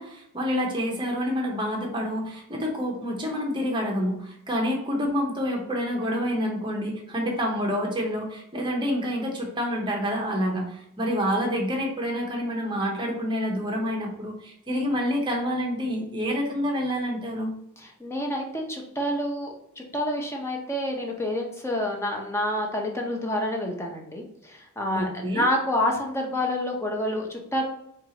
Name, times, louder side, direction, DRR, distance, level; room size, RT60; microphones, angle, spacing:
voice 1, 0.0-17.5 24.9-25.5, equal, 25° right, 0 dB, 0.8 m, -28 dB
voice 2, 18.0-27.6, left 1 dB, 15° left, 1 dB, 0.6 m, -28 dB
4.5 x 2.4 x 2.8 m, 0.77 s
head